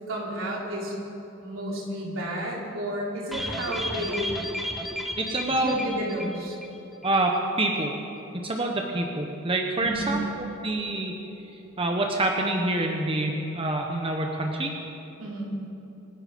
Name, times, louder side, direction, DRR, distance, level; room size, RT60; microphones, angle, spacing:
voice 1, 0.1-1.0 1.4-4.5 5.6-6.6 9.8-10.2 15.2-15.5, right 1 dB, 75° right, -4 dB, 4.0 m, -31 dB
sound 1, 3.3-6.8 7.0-7.1 7.4-7.5, left 1 dB, ahead, 1.0 m, -33 dB
voice 2, 5.2-5.8 7.0-7.9 8.4-10.2 10.6-11.1 11.8-14.7, right 2 dB, 25° right, 2 dB, 1.1 m, -26 dB
26.0 x 10.5 x 5.2 m, 3.0 s
head